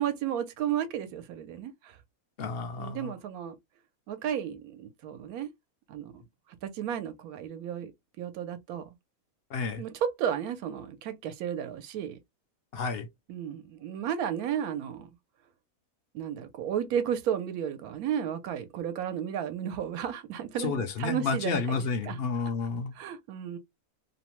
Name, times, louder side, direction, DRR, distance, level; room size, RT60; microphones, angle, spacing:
voice 1, 0.0-2.0 2.8-3.6 4.1-5.5 5.9-6.2 6.6-7.9 8.2-8.8 9.8-12.2 13.3-15.1 16.1-21.6 22.0-22.2 22.9-23.6, right 9 dB, 85° right, 1.1 m, -33 dB
voice 2, 2.4-3.1 9.5-9.8 12.7-13.1 20.6-22.9, left 4 dB, 60° left, 0.6 m, -31 dB
2.8 x 2.0 x 2.9 m
omnidirectional pair, 1.5 m